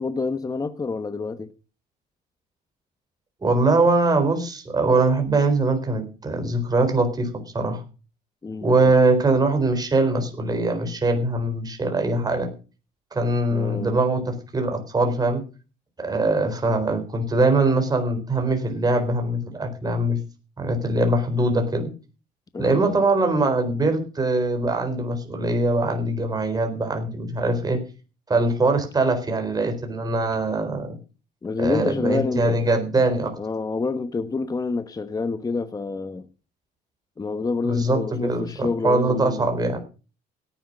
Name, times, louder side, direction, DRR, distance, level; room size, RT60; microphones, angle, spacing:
voice 1, 0.0-1.5 8.4-8.9 13.5-14.0 22.5-23.0 31.4-32.6 33.4-36.2 37.2-39.5, left 4 dB, 20° left, 1.1 m, -27 dB
voice 2, 3.4-7.3 7.5-7.8 8.6-12.5 13.1-15.4 16.0-20.2 20.6-21.9 22.6-27.8 28.3-31.0 31.6-33.3 37.6-39.8, right 2 dB, 25° right, 4.0 m, -22 dB
17.5 x 10.0 x 5.4 m
cardioid pair, 110°, 17 cm